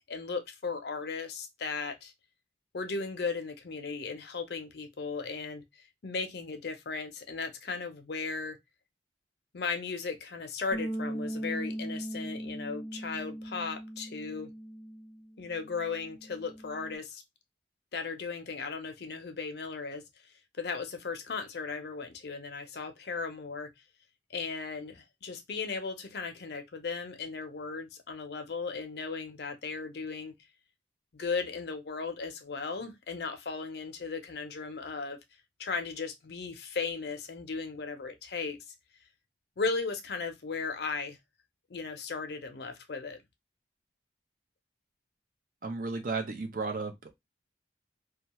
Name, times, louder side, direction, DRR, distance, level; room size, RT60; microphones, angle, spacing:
voice 1, 0.1-2.1 2.7-8.6 9.5-14.5 15.4-17.2 17.9-20.0 20.6-23.7 24.3-30.3 31.1-35.2 35.6-38.7 39.6-41.2 41.7-43.2, left 4 dB, 60° left, 0.5 m, -36 dB
Bass guitar, 10.7-17.0, right 1 dB, 5° right, 0.8 m, -39 dB
voice 2, 45.6-47.1, right 3 dB, 45° right, 0.5 m, -34 dB
2.3 x 2.2 x 2.8 m
head